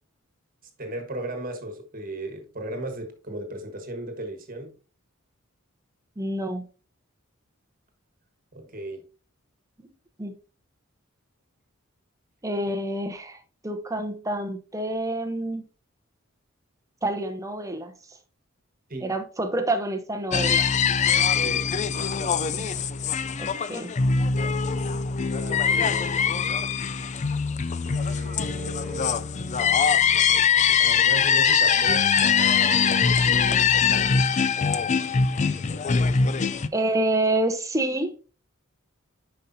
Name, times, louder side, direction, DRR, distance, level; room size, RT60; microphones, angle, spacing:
voice 1, 0.8-4.7 8.5-9.0 12.7-12.8 18.9-19.1 21.3-22.3 25.3-26.6 27.8-29.6 30.8-34.3, right 1 dB, 45° right, 1.5 m, -37 dB
voice 2, 6.2-6.7 10.2-10.3 12.4-15.6 17.0-17.9 19.0-20.7 22.5-22.7 23.4-23.9 36.7-38.2, right 1 dB, 15° right, 0.9 m, -28 dB
sound 1, 20.3-36.7, left 6 dB, 35° left, 0.4 m, -22 dB
9.9 x 5.3 x 2.7 m
head